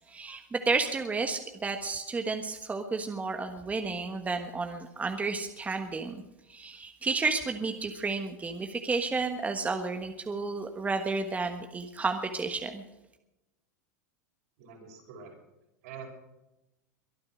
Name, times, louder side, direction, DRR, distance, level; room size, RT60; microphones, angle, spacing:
voice 1, 0.1-6.2 6.5-12.8, right 4 dB, 15° right, 6 dB, 1.4 m, -31 dB
voice 2, 14.6-15.3 15.8-16.1, right 6 dB, 65° right, 1 dB, 6.0 m, -45 dB
23.0 x 9.6 x 6.3 m, 0.94 s
hypercardioid pair, 95°, 9 cm